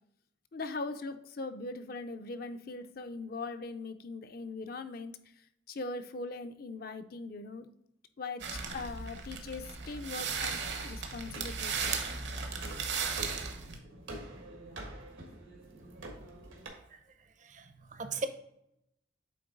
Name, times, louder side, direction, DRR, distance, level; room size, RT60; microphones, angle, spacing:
voice 1, 0.5-5.1 5.7-7.7 8.2-10.6 10.8-11.8, left 3 dB, 50° left, 8 dB, 0.5 m, -40 dB
sound 1, 8.4-13.8, right 5 dB, 65° right, 1.0 m, -36 dB
sound 2, 11.3-16.7, right 1 dB, 90° right, 1.6 m, -46 dB
voice 2, 17.4-18.3, right 4 dB, 40° right, 9 dB, 0.6 m, -38 dB
8.5 x 3.8 x 3.8 m, 0.79 s
head